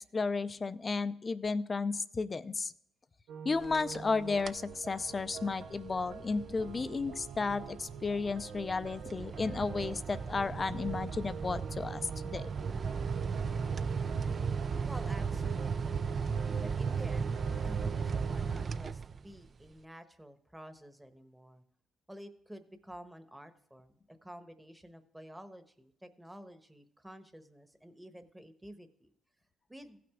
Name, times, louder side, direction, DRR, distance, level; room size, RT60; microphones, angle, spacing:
voice 1, 0.1-2.7 3.4-12.5, left 4 dB, 30° left, 13 dB, 0.5 m, -33 dB
sound 1, 3.3-18.4, right 6 dB, 90° right, 0.6 m, -47 dB
sound 2, 3.6-4.1 4.4-4.7 5.2-19.5, right 5 dB, 40° right, 0.4 m, -36 dB
voice 2, 14.9-16.1 16.6-17.3 17.6-21.6 22.1-29.1 29.7-30.0, equal, 5° right, 8 dB, 1.1 m, -50 dB
15.5 x 6.0 x 3.6 m, 0.69 s
cardioid pair, 90°, 0 cm